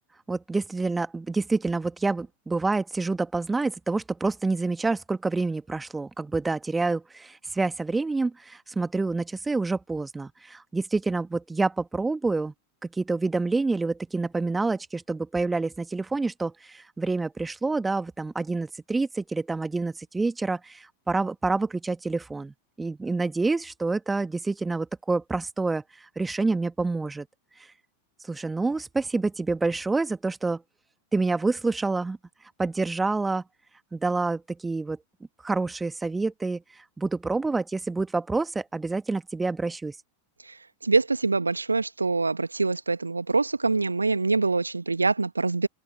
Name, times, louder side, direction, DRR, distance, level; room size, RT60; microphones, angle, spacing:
voice 1, 0.3-12.5 12.8-27.3 28.3-30.6 31.1-32.2 32.6-33.4 33.9-35.0 35.4-36.6 37.0-40.0, right 3 dB, 10° right, 1.9 m, -27 dB
voice 2, 40.8-45.7, right 3 dB, 80° right, 1.4 m, -24 dB
open air
figure-of-eight pair, 90°, 0 cm